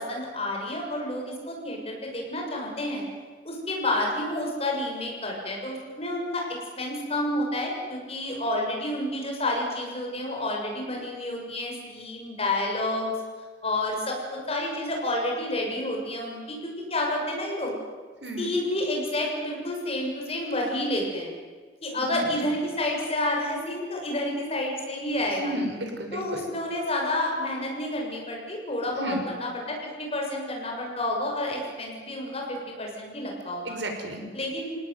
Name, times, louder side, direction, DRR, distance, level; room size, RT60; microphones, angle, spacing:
voice 1, 0.0-3.0 3.4-6.4 6.8-13.1 13.6-17.7 18.4-21.3 21.8-25.5 26.1-33.7 34.3-34.7, left 1 dB, 35° left, 0 dB, 6.9 m, -29 dB
voice 2, 18.2-18.5 21.9-22.2 25.4-26.5 28.9-29.2 33.7-34.2, right 1 dB, 75° right, 3 dB, 5.4 m, -32 dB
28.0 x 18.5 x 9.5 m, 1.5 s
head